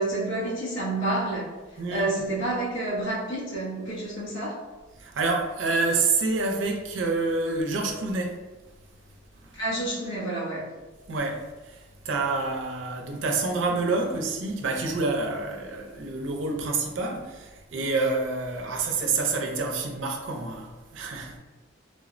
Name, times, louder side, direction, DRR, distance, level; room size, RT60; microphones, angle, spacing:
voice 1, 0.0-1.5 1.9-4.6 9.5-10.7, right 2 dB, 80° left, 1.0 m, -29 dB
voice 2, 1.8-2.1 5.0-8.4 9.4-9.6 11.1-21.4, right 3 dB, 85° right, 0.5 m, -28 dB
3.2 x 2.0 x 2.5 m
head